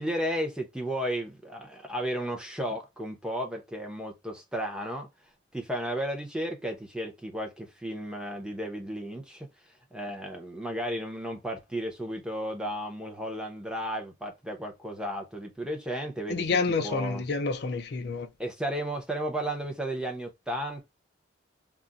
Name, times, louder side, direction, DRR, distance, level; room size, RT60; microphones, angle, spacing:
voice 1, 0.0-5.1 5.5-9.5 9.9-17.2 18.4-20.9, equal, 5° right, 0.6 m, -34 dB
voice 2, 16.3-18.3, left 4 dB, 55° left, 0.4 m, -28 dB
2.4 x 2.0 x 3.8 m
head